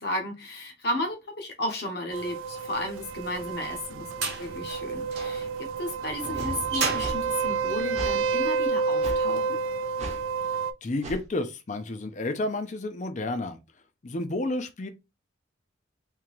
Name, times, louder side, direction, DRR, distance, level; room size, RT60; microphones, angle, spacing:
voice 1, 0.0-9.6, left 1 dB, 55° left, 1.0 m, -34 dB
sound 1, 2.1-10.7, right 5 dB, 85° right, 0.4 m, -29 dB
sound 2, 3.1-8.5, right 3 dB, 55° right, 1.0 m, -34 dB
sound 3, 7.0-7.2 7.9-8.2 9.0-9.2 10.0-10.2 11.0-11.2, right 1 dB, 35° right, 0.7 m, -35 dB
voice 2, 10.8-13.6 14.0-14.9, left 2 dB, 35° left, 0.5 m, -31 dB
3.7 x 2.8 x 3.0 m
head